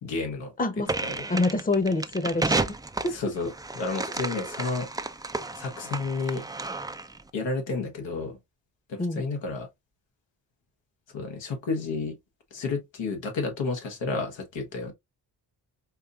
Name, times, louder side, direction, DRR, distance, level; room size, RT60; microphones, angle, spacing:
voice 1, 0.0-0.5 1.0-1.2 3.1-3.5 3.7-4.9 5.5-6.4 7.3-8.4 8.9-9.7 11.1-12.2 12.5-14.9, left 3 dB, 80° left, 1.2 m, -31 dB
voice 2, 0.6-0.9 1.3-2.7 3.0-3.2 9.0-9.2, left 2 dB, 20° left, 0.9 m, -26 dB
sound 1, 0.9-7.2, right 2 dB, 10° right, 0.4 m, -32 dB
4.8 x 2.7 x 2.4 m
cardioid pair, 55°, 44 cm